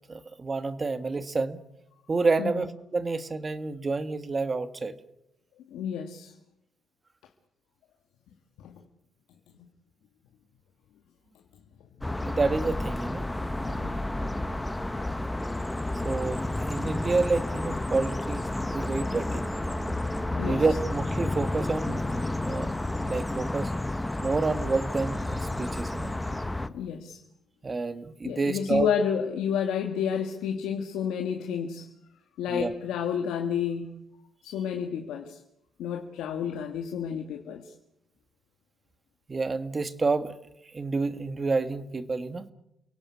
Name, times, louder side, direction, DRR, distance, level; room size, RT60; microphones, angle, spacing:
voice 1, 0.1-1.6 2.1-4.9 12.3-13.3 16.0-19.5 20.4-23.7 24.2-26.2 27.6-28.9 32.5-32.7 39.3-40.3 40.7-42.5, right 3 dB, 30° right, 12 dB, 1.7 m, -29 dB
voice 2, 5.7-6.3 8.6-8.7 13.7-14.0 20.2-20.6 26.7-27.2 28.2-31.9 32.4-34.0 34.4-35.4 35.8-37.7, left 7 dB, 85° left, 4 dB, 2.0 m, -30 dB
sound 1, 12.0-26.7, left 1 dB, 10° left, 1.4 m, -31 dB
29.0 x 18.0 x 8.5 m, 0.84 s
cardioid pair, 90°, 0 cm